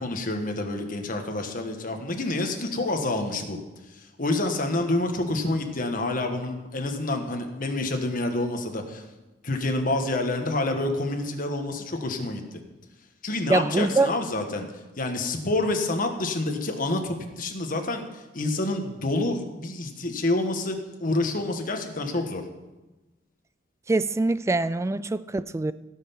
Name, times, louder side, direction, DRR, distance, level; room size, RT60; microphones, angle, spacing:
voice 1, 0.0-3.6 3.9-9.0 9.4-12.6 13.2-14.7 15.0-22.4, left 2 dB, 50° left, 4 dB, 1.4 m, -28 dB
voice 2, 13.5-14.1 23.9-25.7, right 2 dB, 15° right, 15 dB, 0.3 m, -24 dB
17.0 x 5.7 x 5.8 m, 1.1 s
head